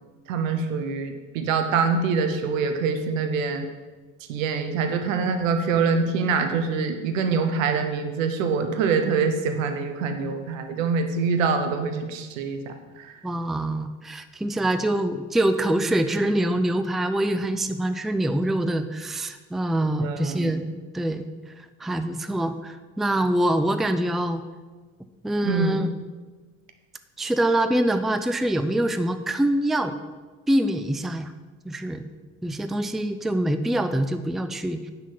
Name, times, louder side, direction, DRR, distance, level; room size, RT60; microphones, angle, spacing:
voice 1, 0.3-3.7 4.3-13.1 20.0-20.5 25.4-25.8, right 5 dB, 75° right, 7 dB, 1.1 m, -25 dB
voice 2, 13.2-21.3 21.8-24.4 25.2-25.9 27.2-30.0 30.5-31.3 31.6-32.0 32.4-34.9, right 1 dB, ahead, 10 dB, 0.5 m, -25 dB
10.0 x 4.2 x 7.5 m, 1.3 s
figure-of-eight pair, 55°, 40 cm